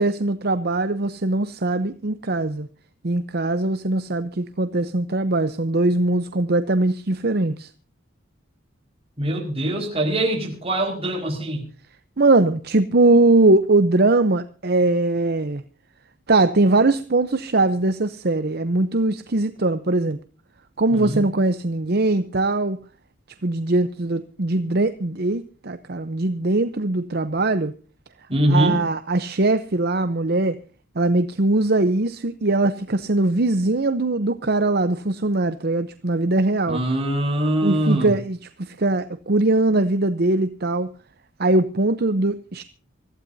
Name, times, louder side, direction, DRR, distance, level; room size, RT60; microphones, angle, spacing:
voice 1, 0.0-2.7 3.0-7.7 12.2-15.6 16.3-20.2 20.8-22.8 23.4-27.7 28.5-30.6 31.0-36.8 37.6-40.9 41.4-42.6, right 2 dB, 50° right, 11 dB, 0.8 m, -21 dB
voice 2, 9.2-11.6 20.9-21.2 28.3-28.8 36.7-38.1, right 1 dB, 30° right, 2 dB, 4.8 m, -23 dB
25.0 x 15.0 x 2.7 m, 0.37 s
head